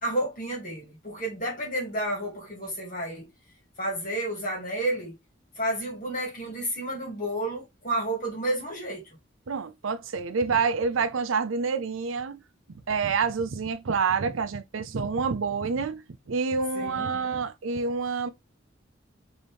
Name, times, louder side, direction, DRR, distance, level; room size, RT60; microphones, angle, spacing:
voice 1, 0.0-3.3 3.8-5.1 5.6-9.0 16.7-17.1, right 1 dB, 40° left, 1.9 m, -31 dB
voice 2, 9.5-12.4 12.9-18.3, right 5 dB, 85° right, 0.5 m, -27 dB
4.0 x 2.9 x 3.4 m
head